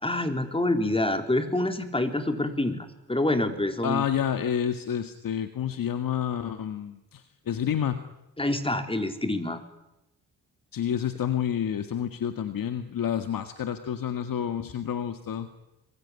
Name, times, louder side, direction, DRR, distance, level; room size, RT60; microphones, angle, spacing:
voice 1, 0.0-4.1 8.4-9.6, left 1 dB, 15° left, 7 dB, 4.0 m, -27 dB
voice 2, 3.8-8.0 10.7-15.5, left 9 dB, 65° left, 8 dB, 1.9 m, -29 dB
26.5 x 23.0 x 9.9 m, 0.92 s
cardioid pair, 75°, 36 cm